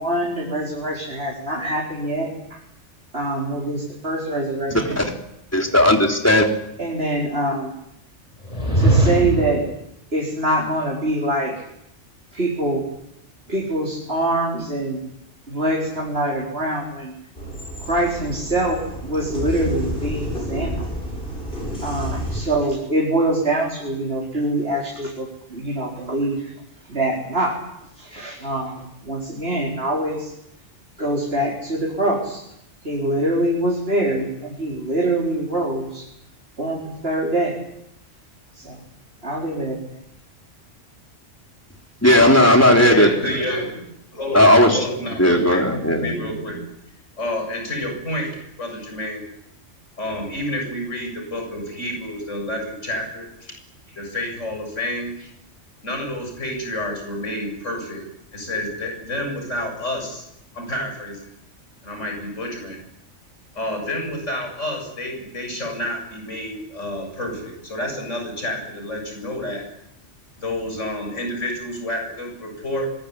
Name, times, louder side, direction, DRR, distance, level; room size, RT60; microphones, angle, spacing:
voice 1, 0.0-2.6 3.1-5.0 6.8-7.7 8.7-9.6 10.1-11.6 12.3-12.8 13.5-15.0 15.5-17.1 17.8-20.9 21.8-26.5 26.9-27.6 28.0-30.3 31.0-32.4 32.8-36.1 36.6-37.6 38.5-38.8 39.2-40.0, right 1 dB, 55° right, -2 dB, 5.0 m, -24 dB
voice 2, 4.7-5.1 5.5-6.5 42.0-43.1 44.3-44.8 45.2-46.1, left 1 dB, 10° left, 2 dB, 3.8 m, -15 dB
sound 1, 8.4-9.6, right 1 dB, 30° left, 6.8 m, -19 dB
sound 2, 17.4-22.4, equal, 50° left, 8.5 m, -30 dB
voice 3, 42.7-43.8 44.1-44.5 44.7-46.6 47.2-48.3 48.6-49.2 50.0-53.5 53.9-55.3 55.8-58.0 58.3-60.2 60.5-61.3 61.8-62.8 63.5-69.6 70.4-72.9, left 1 dB, 90° left, 3 dB, 8.0 m, -29 dB
25.0 x 21.5 x 9.9 m, 0.79 s
omnidirectional pair, 1.2 m